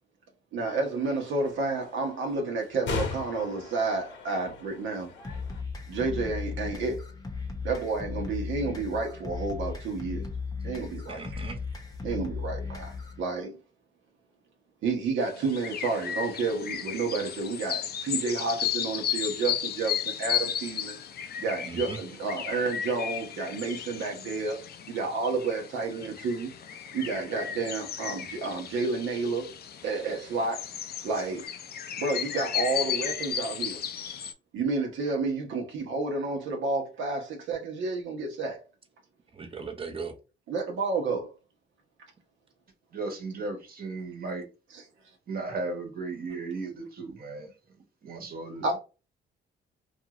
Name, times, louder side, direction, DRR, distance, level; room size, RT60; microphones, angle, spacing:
voice 1, 0.5-5.1 5.9-7.1 7.6-10.3 10.6-11.2 12.0-13.5 14.8-21.0 21.4-26.5 26.9-29.5 29.8-30.6 31.0-31.5 32.0-33.8 34.5-38.6 40.5-41.3 44.7-44.8 48.6-48.8, right 3 dB, 75° right, 1.0 m, -30 dB
sound 1, 0.6-5.6, left 5 dB, 70° left, 0.9 m, -39 dB
sound 2, 5.2-13.2, left 4 dB, 20° left, 0.8 m, -36 dB
voice 2, 11.1-11.6 21.6-22.0 39.3-40.1, right 4 dB, 25° right, 0.7 m, -38 dB
sound 3, 15.2-34.3, left 9 dB, 55° left, 0.5 m, -34 dB
voice 3, 42.9-44.4 45.3-47.5 48.0-48.8, right 3 dB, 50° right, 1.2 m, -35 dB
2.6 x 2.4 x 2.9 m
cardioid pair, 90°, 20 cm